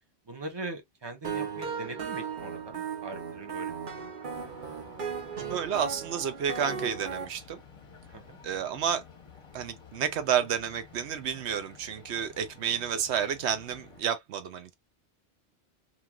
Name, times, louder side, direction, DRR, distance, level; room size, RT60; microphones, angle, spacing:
voice 1, 0.3-4.1 8.1-8.4, right 2 dB, 30° right, 0.6 m, -41 dB
sound 1, 1.2-7.3, right 6 dB, 50° right, 0.9 m, -36 dB
sound 2, 4.3-14.0, left 5 dB, 35° left, 0.7 m, -52 dB
voice 2, 5.5-7.6 8.4-9.0 9.5-14.7, right 8 dB, 80° right, 0.9 m, -30 dB
3.1 x 2.6 x 2.2 m
omnidirectional pair, 1.1 m